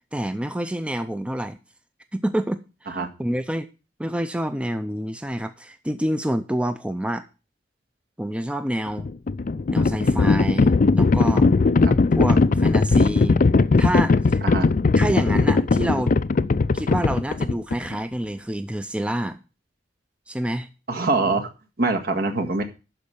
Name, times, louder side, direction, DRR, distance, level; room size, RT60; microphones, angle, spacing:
voice 1, 0.1-1.6 2.1-3.7 4.0-7.2 8.2-9.1 9.7-11.5 12.1-13.4 13.8-14.4 15.0-16.1 16.7-19.4 20.3-20.7, right 1 dB, 5° right, 9 dB, 0.5 m, -27 dB
Livestock farm animals working animals, 8.9-17.9, left 3 dB, 50° left, 0.4 m, -19 dB
voice 2, 20.9-21.5 21.8-22.6, right 3 dB, 60° right, 4 dB, 1.7 m, -23 dB
12.0 x 4.9 x 6.9 m, 0.31 s
head